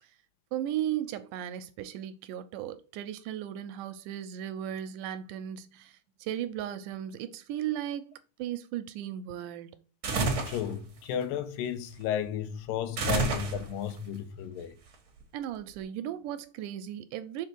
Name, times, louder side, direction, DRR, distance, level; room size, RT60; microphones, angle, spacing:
voice 1, 0.5-8.1 8.4-9.8 15.3-17.5, right 11 dB, 80° right, 2.0 m, -36 dB
sound 1, 10.0-10.7 13.0-13.9, right 3 dB, 60° right, 1.0 m, -28 dB
voice 2, 10.5-14.8, left 9 dB, 85° left, 2.4 m, -33 dB
6.6 x 3.8 x 4.5 m
omnidirectional pair, 3.9 m